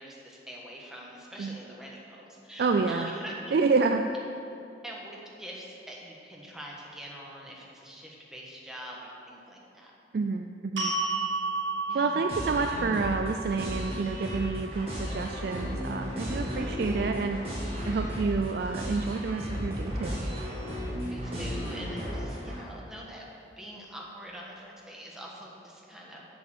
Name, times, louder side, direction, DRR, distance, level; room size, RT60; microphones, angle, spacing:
voice 1, 0.0-3.6 4.8-9.9 11.9-12.2 21.1-23.2 23.6-26.3, equal, 5° right, -3 dB, 1.3 m, -44 dB
voice 2, 2.6-3.1 3.5-4.1 10.1-10.9 11.9-17.4 17.9-20.3, right 4 dB, 55° right, 5 dB, 0.3 m, -29 dB
sound 1, 10.8-17.0, right 3 dB, 90° right, 1.7 m, -35 dB
sound 2, 12.3-22.6, equal, 30° right, 2.1 m, -34 dB
8.1 x 6.7 x 6.3 m, 2.6 s
head